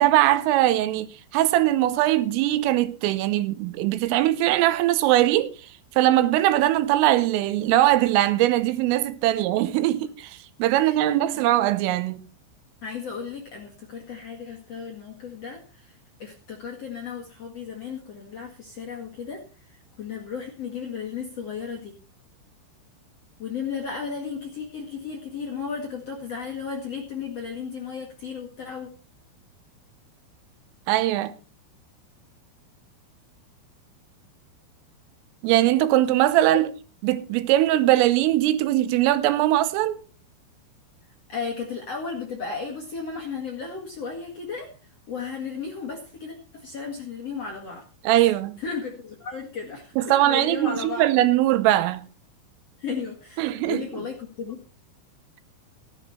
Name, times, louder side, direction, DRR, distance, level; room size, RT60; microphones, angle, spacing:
voice 1, 0.0-5.5 5.9-12.3 30.9-31.3 35.4-36.7 37.0-40.0 48.0-48.6 50.0-52.0 53.4-53.8, right 14 dB, 80° right, 3.4 m, -21 dB
voice 2, 10.8-11.5 12.8-21.9 23.4-28.9 36.5-36.6 41.3-44.7 45.1-47.8 48.6-51.1 52.8-54.6, left 5 dB, 50° left, 1.9 m, -34 dB
15.5 x 11.0 x 4.2 m
omnidirectional pair, 5.9 m